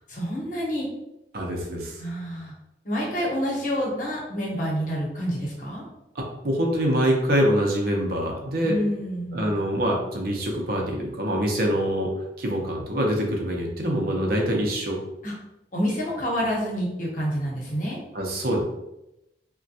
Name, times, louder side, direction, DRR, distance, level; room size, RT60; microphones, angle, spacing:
voice 1, 0.1-0.8 2.0-2.5 2.8-5.8 8.6-9.5 15.2-15.3 15.7-18.0, equal, 45° left, -4 dB, 0.9 m, -28 dB
voice 2, 1.3-2.0 6.2-8.8 9.3-12.1 12.4-15.0 18.1-18.6, equal, 55° right, 0 dB, 0.6 m, -25 dB
3.4 x 2.2 x 2.7 m, 0.88 s
head